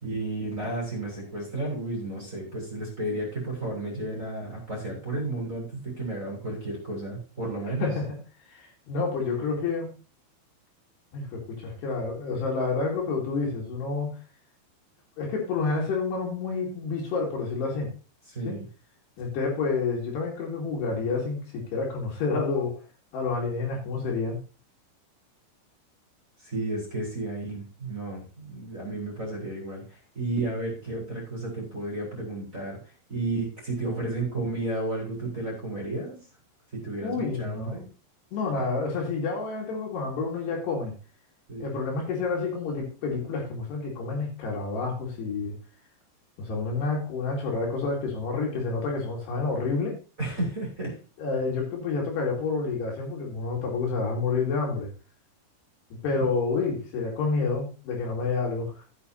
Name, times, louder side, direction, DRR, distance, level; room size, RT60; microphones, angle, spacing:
voice 1, 0.0-7.9 18.3-18.6 26.4-32.8 33.1-36.2 36.7-37.9 41.5-41.8 50.2-51.0 56.1-56.2, right 2 dB, 15° right, -4 dB, 4.3 m, -32 dB
voice 2, 7.6-8.2 8.5-9.9 11.1-14.2 15.2-17.9 18.5-18.6 19.2-22.8 23.1-24.4 37.0-37.8 38.3-40.9 41.6-45.6 46.4-50.0 51.2-54.9 56.0-58.8, left 4 dB, 65° left, -1 dB, 4.1 m, -29 dB
14.5 x 8.8 x 2.8 m, 0.33 s
omnidirectional pair, 5.6 m